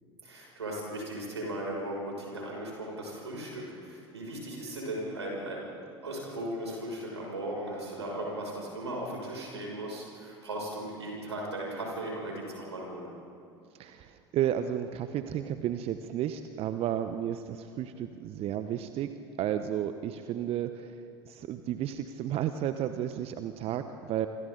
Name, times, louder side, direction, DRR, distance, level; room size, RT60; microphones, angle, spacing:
voice 1, 0.2-5.8 6.0-13.1, right 1 dB, 85° right, -2 dB, 6.6 m, -37 dB
voice 2, 13.8-19.1 19.4-21.0 21.3-24.3, right 10 dB, 45° right, 9 dB, 1.0 m, -32 dB
28.0 x 25.0 x 4.0 m, 2.6 s
figure-of-eight pair, 75°, 14 cm